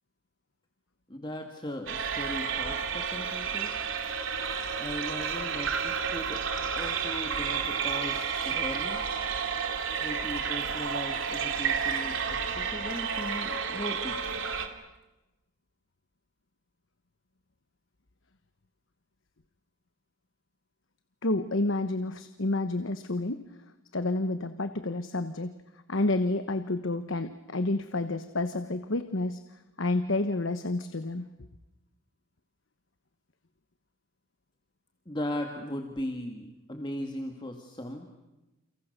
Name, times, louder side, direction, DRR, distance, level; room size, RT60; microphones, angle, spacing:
voice 1, 1.1-3.8 4.8-6.4 6.8-9.0 10.0-14.4 35.1-38.1, left 1 dB, 20° left, 3 dB, 2.0 m, -38 dB
sound 1, 1.9-14.7, right 6 dB, 65° right, 2.8 m, -31 dB
voice 2, 21.2-23.4 23.9-25.6 25.9-29.4 29.8-31.3, left 2 dB, 65° left, 10 dB, 1.2 m, -29 dB
29.5 x 29.5 x 6.7 m, 1.0 s
head